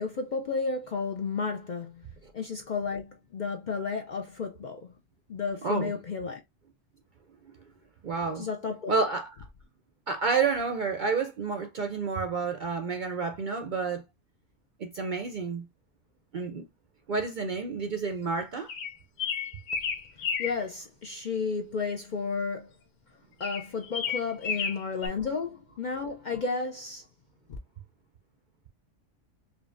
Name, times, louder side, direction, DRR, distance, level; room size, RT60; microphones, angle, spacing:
voice 1, 0.0-2.1 2.3-4.9 5.3-6.4 8.4-9.1 20.4-22.7 23.4-27.1 27.5-27.6, left 4 dB, 55° left, 0.5 m, -32 dB
voice 2, 5.6-5.9 8.0-8.5 8.9-9.4 10.1-14.0 14.8-15.7 16.3-16.6 17.1-18.7, right 4 dB, 60° right, 0.5 m, -29 dB
sound 1, 18.7-20.6 23.4-25.1, left 6 dB, 75° left, 1.0 m, -32 dB
5.0 x 2.3 x 2.5 m
omnidirectional pair, 1.3 m